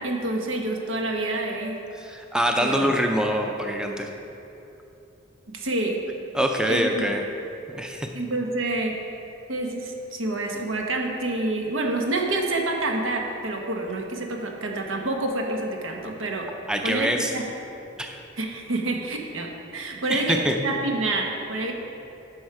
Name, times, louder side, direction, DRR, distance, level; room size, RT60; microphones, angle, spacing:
voice 1, 0.0-1.7 2.6-2.8 5.5-6.0 6.7-7.1 8.1-8.9 9.5-16.5 16.8-17.4 18.4-20.4 20.6-21.7, right 2 dB, 85° right, 1 dB, 1.2 m, -28 dB
voice 2, 2.0-4.1 6.3-7.2 7.7-8.1 16.7-17.3 18.0-18.2 20.1-20.6, equal, 5° right, 3 dB, 0.5 m, -24 dB
10.5 x 6.3 x 4.8 m, 2.9 s
head